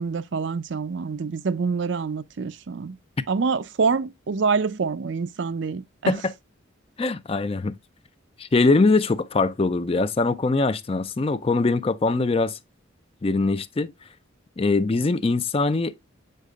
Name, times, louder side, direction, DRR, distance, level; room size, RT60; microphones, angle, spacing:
voice 1, 0.0-3.0 3.3-6.2, right 5 dB, 60° right, 0.5 m, -26 dB
voice 2, 7.0-7.8 8.4-12.6 13.2-13.9 14.6-15.9, left 3 dB, 25° left, 0.4 m, -22 dB
7.4 x 6.6 x 2.3 m
head